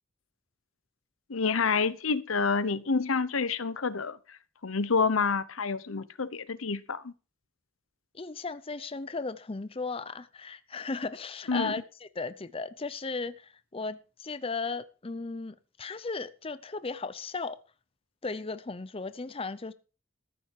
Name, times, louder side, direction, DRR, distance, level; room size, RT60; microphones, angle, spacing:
voice 1, 1.3-4.2 4.6-7.1 11.5-11.7, left 4 dB, 90° left, 0.9 m, -28 dB
voice 2, 8.1-17.6 18.2-19.7, left 4 dB, 30° left, 0.6 m, -36 dB
14.0 x 9.8 x 4.7 m
head